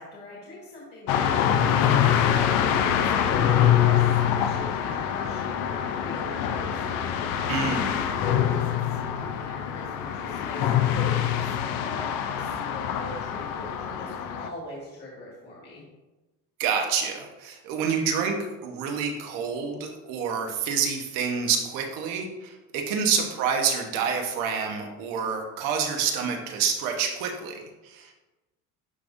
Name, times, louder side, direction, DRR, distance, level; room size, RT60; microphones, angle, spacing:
voice 1, 0.0-6.8 7.9-8.1 8.5-11.5 11.8-15.8 23.2-23.4, left 1 dB, 30° left, -4 dB, 1.5 m, -41 dB
sound 1, 1.1-14.5, left 9 dB, 70° left, 0.6 m, -25 dB
voice 2, 7.5-7.9 16.6-28.1, right 6 dB, 80° right, 3 dB, 1.1 m, -28 dB
9.9 x 3.6 x 2.6 m, 1.1 s
cardioid pair, 135°, 33 cm